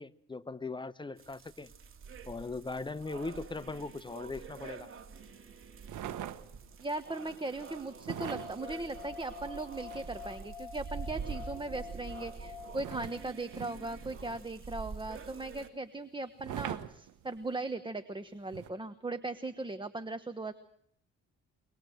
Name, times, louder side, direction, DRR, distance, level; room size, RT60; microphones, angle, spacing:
voice 1, 0.0-1.7 2.3-4.9, left 3 dB, 15° left, 0.8 m, -39 dB
sound 1, 1.2-15.7, right 5 dB, 45° right, 2.7 m, -46 dB
sound 2, 5.8-6.8 8.0-10.4 12.7-14.7 16.4-17.6 18.5-18.7, right 11 dB, 80° right, 1.2 m, -43 dB
voice 2, 6.8-20.5, right 2 dB, 15° right, 1.2 m, -38 dB
sound 3, 8.1-13.7, left 7 dB, 40° left, 3.2 m, -48 dB
24.0 x 20.0 x 7.9 m
cardioid pair, 90°, 30 cm